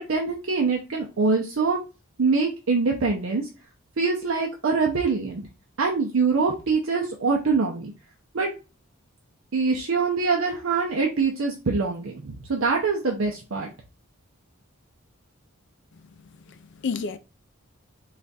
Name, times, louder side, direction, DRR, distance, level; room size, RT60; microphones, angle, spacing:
voice 1, 0.0-1.8 2.2-3.5 4.0-5.5 5.8-7.9 8.3-8.5 9.5-13.7, right 4 dB, 65° right, 0.6 m, -24 dB
voice 2, 15.9-17.2, left 5 dB, 55° left, 0.4 m, -33 dB
3.3 x 2.4 x 4.0 m
head